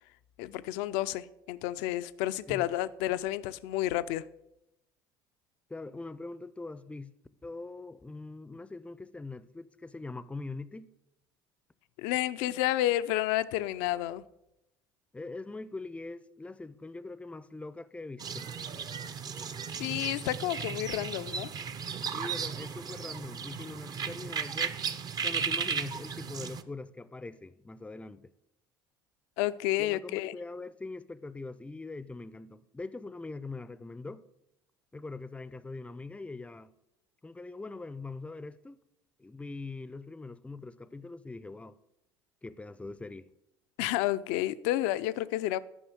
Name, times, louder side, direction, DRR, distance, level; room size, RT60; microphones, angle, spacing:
voice 1, 0.4-4.2 12.0-14.2 19.8-21.5 29.4-30.4 43.8-45.6, left 15 dB, 65° left, 0.4 m, -30 dB
voice 2, 5.7-7.1 7.4-10.9 15.1-18.5 22.1-24.8 25.2-28.3 29.8-34.3 34.9-36.7 37.2-38.8 39.2-41.8 42.4-43.3, left 3 dB, 10° left, 0.5 m, -42 dB
sound 1, 18.2-26.6, right 6 dB, 35° right, 0.6 m, -35 dB
10.0 x 5.5 x 6.1 m
hypercardioid pair, 65°, 11 cm